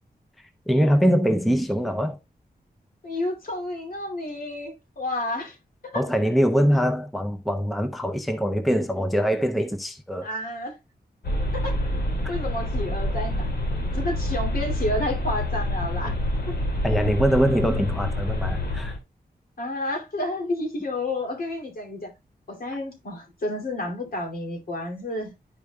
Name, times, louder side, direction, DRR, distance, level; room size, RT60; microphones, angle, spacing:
voice 1, 0.7-2.2 5.9-10.3 16.8-19.0, equal, ahead, 0.6 m, -23 dB
voice 2, 3.0-5.6 5.8-6.0 10.2-10.8 11.5-11.7 12.3-13.5 13.7-16.1 16.5-16.6 19.6-22.1 22.5-25.3, left 1 dB, 60° left, 2.6 m, -30 dB
sound 1, 11.2-19.0, left 1 dB, 80° left, 2.6 m, -27 dB
12.0 x 5.1 x 2.3 m
wide cardioid pair, 160°, 17 cm